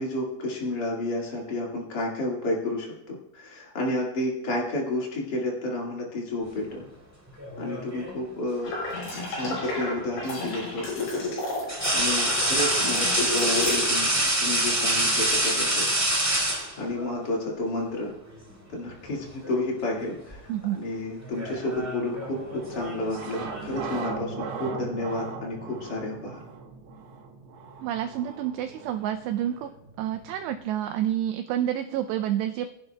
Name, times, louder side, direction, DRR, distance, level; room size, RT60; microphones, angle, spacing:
voice 1, 0.0-6.8 7.6-8.7 9.1-11.3 11.7-15.8 16.8-18.1 18.7-26.4, left 1 dB, 85° left, -2 dB, 0.9 m, -31 dB
sound 1, 7.4-8.2 10.0-10.2 11.7-17.1 18.3-18.5 18.9-19.7 20.0-20.3 21.2-23.8, right 1 dB, 5° right, 4.1 m, -26 dB
sound 2, 8.6-13.8, left 3 dB, 65° left, 7.7 m, -32 dB
sound 3, 22.3-31.0, right 4 dB, 70° right, 3.0 m, -39 dB
voice 2, 27.8-29.7 30.0-32.7, right 11 dB, 85° right, 8 dB, 2.4 m, -29 dB
23.5 x 11.0 x 2.3 m, 0.89 s
omnidirectional pair, 5.5 m